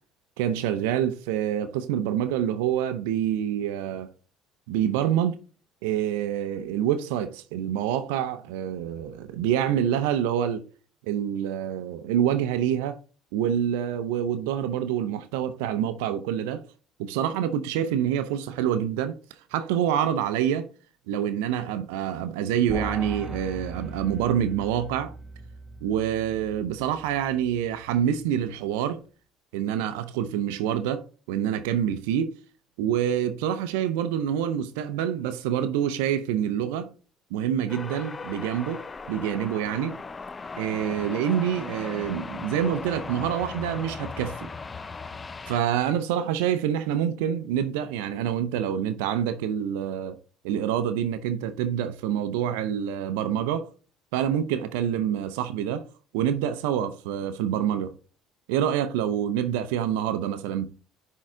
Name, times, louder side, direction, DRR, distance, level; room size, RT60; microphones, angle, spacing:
voice 1, 0.4-4.1 4.7-5.4 5.8-10.6 11.1-13.0 13.3-16.6 17.0-19.2 19.5-20.7 21.1-25.1 25.8-29.0 29.5-32.4 32.8-36.9 37.3-40.0 40.6-44.5 45.5-50.2 50.4-53.7 54.1-55.9 56.1-57.9 58.5-60.7, right 10 dB, 80° right, 0.6 m, -26 dB
sound 1, 22.7-28.2, right 1 dB, 5° right, 1.6 m, -40 dB
sound 2, 37.7-45.6, left 4 dB, 25° left, 0.4 m, -37 dB
10.0 x 3.7 x 3.7 m
hypercardioid pair, 65°, 0 cm